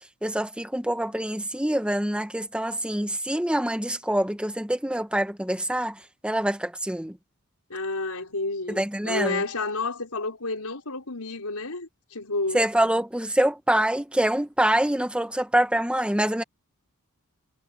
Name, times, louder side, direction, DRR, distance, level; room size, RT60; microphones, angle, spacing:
voice 1, 0.2-7.2 8.7-9.4 12.5-16.4, right 1 dB, 5° right, 1.4 m, -25 dB
voice 2, 7.7-12.6, left 3 dB, 80° left, 4.9 m, -30 dB
head